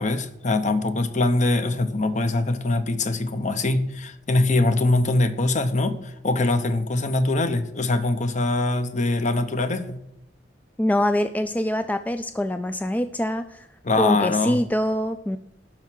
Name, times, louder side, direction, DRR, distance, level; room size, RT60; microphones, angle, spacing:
voice 1, 0.0-10.0 13.8-14.6, left 2 dB, 45° left, 0.8 m, -23 dB
voice 2, 10.8-13.7 13.9-15.4, left 1 dB, 10° left, 0.3 m, -24 dB
12.0 x 4.6 x 7.6 m
head